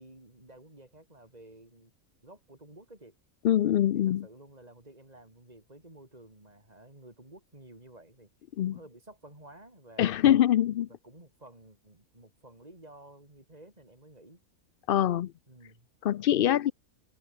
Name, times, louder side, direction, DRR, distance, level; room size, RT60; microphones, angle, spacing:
voice 1, 0.0-1.9 2.2-3.2 4.0-8.3 8.6-10.2 10.9-14.4 15.5-15.9, right 1 dB, 30° right, 5.4 m, -53 dB
voice 2, 3.4-4.3 8.6-8.8 10.0-10.9 14.9-15.3 16.0-16.7, left 11 dB, 70° left, 0.5 m, -24 dB
omnidirectional pair, 1.4 m